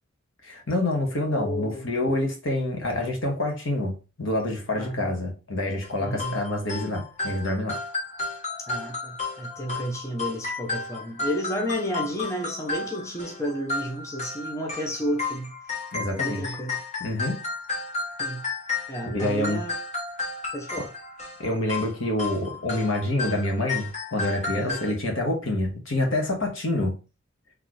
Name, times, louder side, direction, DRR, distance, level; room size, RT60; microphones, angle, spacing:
voice 1, 0.4-7.8 15.9-16.5 17.0-17.4 19.0-19.6 20.8-20.9 21.4-27.0, left 1 dB, 75° left, 1.4 m, -27 dB
voice 2, 1.3-1.9 4.8-5.2 6.0-6.4 8.7-15.5 16.2-16.8 18.2-18.4 18.9-19.8 20.5-20.9 24.5-24.8, equal, 15° left, 0.7 m, -31 dB
sound 1, 5.8-24.9, left 3 dB, 35° left, 1.3 m, -33 dB
4.2 x 3.2 x 3.1 m
head